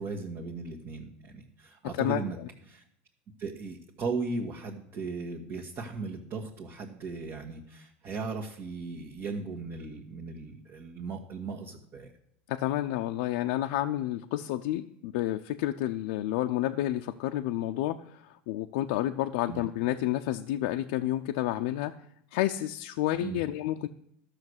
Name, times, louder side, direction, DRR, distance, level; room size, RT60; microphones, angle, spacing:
voice 1, 0.0-2.4 2.7-2.8 3.4-12.1 19.4-19.6 23.2-23.4, right 4 dB, 45° right, 0 dB, 1.6 m, -37 dB
voice 2, 12.5-22.0 22.3-23.9, left 14 dB, 75° left, 5 dB, 0.6 m, -30 dB
12.0 x 6.6 x 8.0 m, 0.71 s
supercardioid pair, 110°, 6 cm